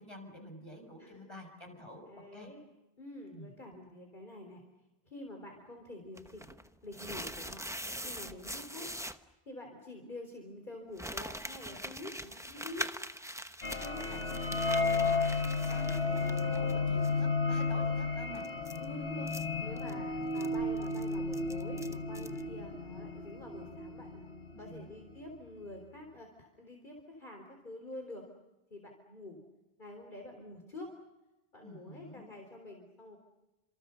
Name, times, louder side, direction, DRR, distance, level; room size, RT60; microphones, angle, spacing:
voice 1, 0.0-2.5 3.3-3.5 14.0-18.4 19.2-19.8 24.5-24.9 31.6-32.3, equal, 25° left, 3 dB, 6.5 m, -49 dB
voice 2, 2.1-2.6 3.0-4.6 5.1-6.5 6.8-7.7 8.0-8.9 9.5-12.9 13.8-14.0 18.8-19.3 19.6-24.2 24.6-28.3 28.7-29.4 29.8-30.9 31.5-33.2, left 1 dB, 50° left, 2 dB, 4.0 m, -47 dB
sound 1, 6.2-9.2 11.0-16.7 17.0-17.1 18.3-22.4, equal, 5° right, 0.9 m, -43 dB
sound 2, 13.6-24.9, left 3 dB, 70° left, 2.3 m, -33 dB
30.0 x 27.0 x 6.9 m, 1.0 s
omnidirectional pair, 1.1 m